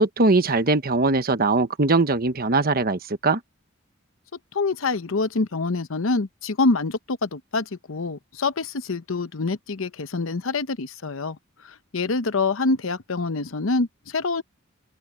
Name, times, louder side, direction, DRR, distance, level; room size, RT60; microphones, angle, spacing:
voice 1, 0.0-3.4, right 3 dB, 45° right, 1.2 m, -21 dB
voice 2, 4.5-11.4 11.6-14.4, left 3 dB, 75° left, 0.9 m, -26 dB
head